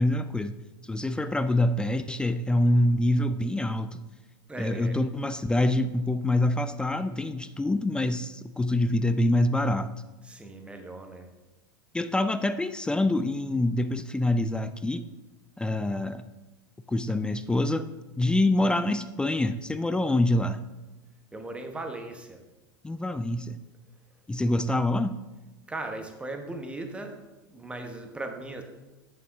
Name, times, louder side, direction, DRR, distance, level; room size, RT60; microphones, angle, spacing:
voice 1, 0.0-4.0 4.6-9.9 11.9-15.0 15.6-16.2 16.9-17.9 18.2-20.6 22.8-23.6 24.3-25.2, left 1 dB, 5° left, 11 dB, 0.3 m, -26 dB
voice 2, 4.5-5.0 10.2-11.3 21.3-22.4 25.7-27.2 27.5-28.6, right 2 dB, 10° right, 4 dB, 1.1 m, -38 dB
8.3 x 7.2 x 3.5 m, 1.1 s
figure-of-eight pair, 90°, 12 cm